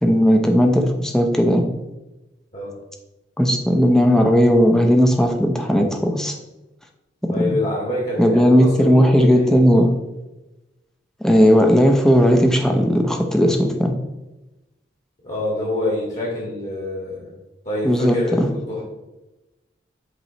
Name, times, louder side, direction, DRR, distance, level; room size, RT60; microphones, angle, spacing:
voice 1, 0.0-1.7 3.4-6.3 7.2-7.6 8.2-9.9 11.2-14.0 17.8-18.5, equal, 5° left, 3 dB, 0.6 m, -16 dB
voice 2, 7.3-9.5 15.2-17.3 17.6-18.8, left 1 dB, 40° left, -5 dB, 1.7 m, -26 dB
8.0 x 3.0 x 4.2 m, 1.0 s
head